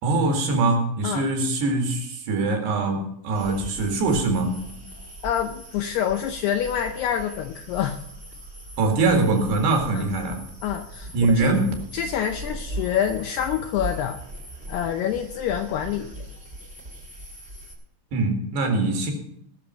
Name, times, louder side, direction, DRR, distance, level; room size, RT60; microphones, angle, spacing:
voice 1, 0.0-4.6 8.8-10.4 11.1-11.7 18.1-19.1, right 3 dB, 65° right, 3 dB, 3.9 m, -23 dB
sound 1, 3.3-17.7, right 1 dB, 25° right, 1.5 m, -39 dB
voice 2, 5.2-8.0 9.9-10.1 10.6-11.5 11.9-14.2 14.7-16.3, left 9 dB, 80° left, 6 dB, 2.4 m, -27 dB
19.5 x 6.8 x 5.7 m, 0.74 s
omnidirectional pair, 5.5 m